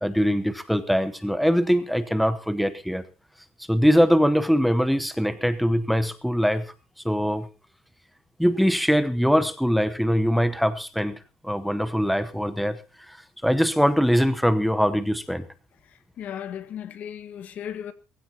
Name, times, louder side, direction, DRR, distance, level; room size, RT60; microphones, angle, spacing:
voice 1, 0.0-3.0 3.7-6.7 7.0-7.5 8.4-12.8 13.1-13.2 13.4-15.4, equal, ahead, 0.9 m, -22 dB
voice 2, 15.8-17.9, left 9 dB, 60° left, 1.6 m, -36 dB
21.0 x 15.5 x 2.9 m
cardioid pair, 135°, 3 cm